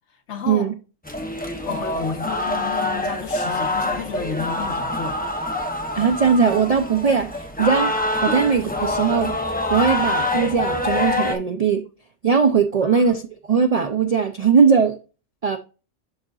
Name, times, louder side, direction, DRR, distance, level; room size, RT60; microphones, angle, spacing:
voice 1, 0.3-0.7 1.6-5.2 8.3-8.4 12.8-13.1, left 5 dB, 65° left, 1.4 m, -32 dB
sound 1, 1.1-11.4, left 2 dB, 10° left, 0.5 m, -25 dB
voice 2, 6.0-7.9 8.2-9.3 9.7-11.8 12.2-15.0 15.4-15.6, right 6 dB, 60° right, 0.3 m, -19 dB
11.0 x 3.8 x 2.4 m
omnidirectional pair, 1.3 m